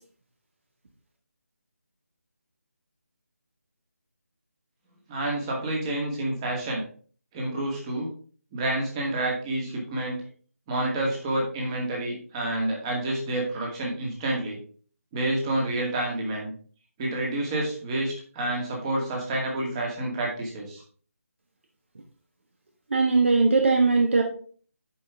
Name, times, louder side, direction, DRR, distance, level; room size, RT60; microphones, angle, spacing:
voice 1, 5.1-6.8 7.3-8.1 8.5-10.2 10.7-14.6 15.1-16.5 17.0-20.8, right 1 dB, 20° right, -2 dB, 2.2 m, -29 dB
voice 2, 22.9-24.2, right 3 dB, 50° right, 2 dB, 1.2 m, -20 dB
9.8 x 5.4 x 3.5 m, 0.43 s
figure-of-eight pair, 155°, 8 cm